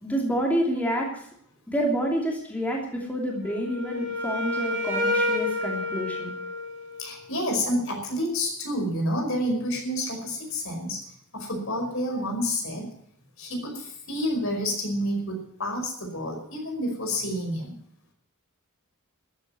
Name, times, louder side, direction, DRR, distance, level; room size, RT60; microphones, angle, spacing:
voice 1, 0.0-1.1 1.7-6.3, equal, 5° left, -1 dB, 2.9 m, -28 dB
Wind instrument woodwind instrument, 3.4-7.3, left 2 dB, 55° right, 4.4 m, -29 dB
voice 2, 7.0-11.0 11.3-12.9 13.4-17.7, equal, 65° left, 2 dB, 5.2 m, -29 dB
14.0 x 8.9 x 9.6 m, 0.68 s
head